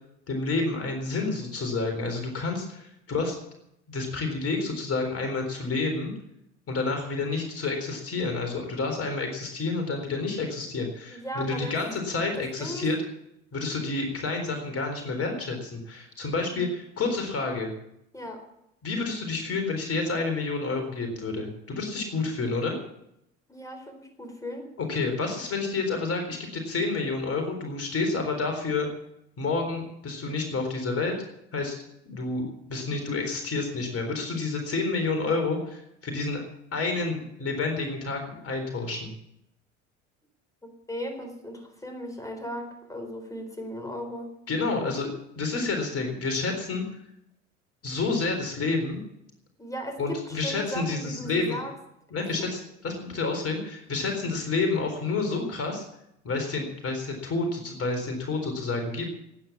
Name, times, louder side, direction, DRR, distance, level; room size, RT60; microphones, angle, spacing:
voice 1, 0.3-3.4 3.9-6.1 6.7-13.0 13.5-17.7 18.8-22.8 24.8-28.9 29.4-31.2 31.5-31.8 32.1-36.4 36.7-39.1 44.5-45.1 45.4-46.8 47.8-49.0 50.0-51.6 52.1-55.8 56.2-59.1, left 3 dB, 40° left, 5 dB, 4.0 m, -29 dB
voice 2, 11.1-11.8 12.3-12.9 18.1-18.4 23.5-24.7 40.9-44.3 49.6-51.7 52.2-52.3, equal, 10° left, 5 dB, 4.2 m, -37 dB
17.0 x 9.6 x 7.3 m, 0.81 s
hypercardioid pair, 65°, 37 cm